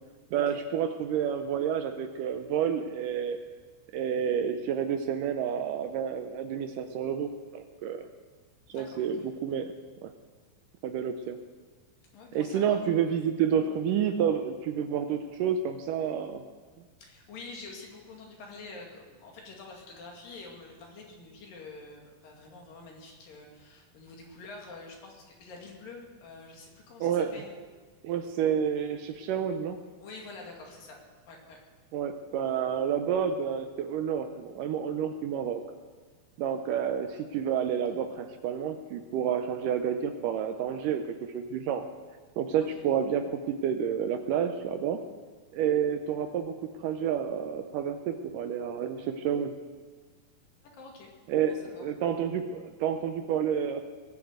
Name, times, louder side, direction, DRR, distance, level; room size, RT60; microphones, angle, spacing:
voice 1, 0.3-3.4 3.9-8.1 8.7-9.7 10.0-10.1 10.8-11.4 12.3-16.4 27.0-27.4 28.0-29.8 31.9-35.6 36.4-41.9 42.4-45.0 45.5-49.5 51.3-53.8, right 8 dB, 75° right, 7 dB, 2.1 m, -29 dB
voice 2, 8.7-9.3 12.1-12.8 17.0-27.5 30.0-31.0 31.3-31.6 42.6-42.7 50.6-51.1 51.4-51.8, left 3 dB, 70° left, 0 dB, 3.9 m, -47 dB
20.0 x 7.7 x 8.0 m, 1.5 s
omnidirectional pair, 4.3 m